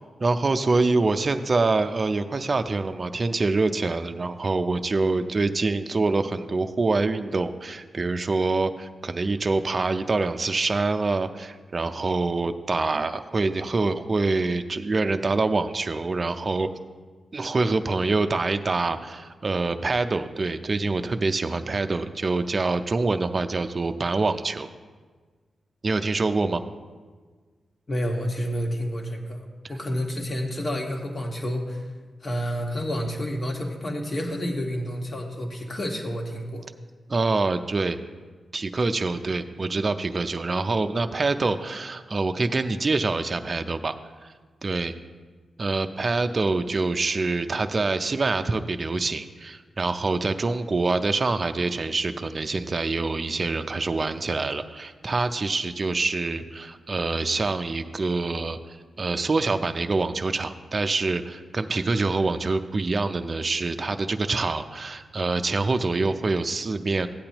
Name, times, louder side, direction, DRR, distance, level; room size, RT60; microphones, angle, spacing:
voice 1, 0.2-16.7 17.3-24.7 25.8-26.6 29.6-29.7 37.1-38.0 38.5-44.0 44.2-44.3 44.6-44.9 45.6-67.1, right 3 dB, 45° right, 8 dB, 0.5 m, -25 dB
voice 2, 27.9-29.4 29.7-31.9 32.2-36.7, equal, 45° left, 1 dB, 1.5 m, -29 dB
13.5 x 8.6 x 3.0 m, 1.4 s
cardioid pair, 65°, 0 cm